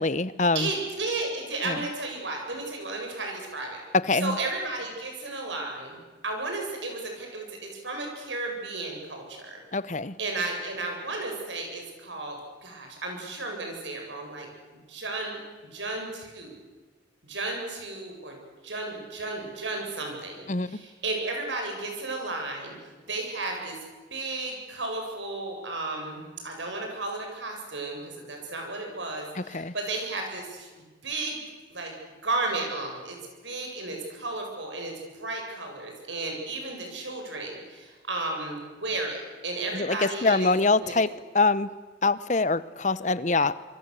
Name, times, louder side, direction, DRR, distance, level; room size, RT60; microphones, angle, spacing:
voice 1, 0.0-0.7 1.6-1.8 3.9-4.4 9.7-10.2 20.5-20.7 29.4-29.7 39.7-41.7 42.0-43.6, left 3 dB, 40° left, 17 dB, 0.8 m, -24 dB
voice 2, 0.5-3.8 4.2-9.6 10.2-14.5 14.9-15.4 15.7-16.6 17.2-22.7 23.0-23.8 24.1-31.4 31.7-32.0 32.2-33.2 33.4-40.5 40.8-41.0, right 2 dB, 80° right, 2 dB, 7.7 m, -33 dB
26.5 x 24.0 x 8.3 m, 1.3 s
head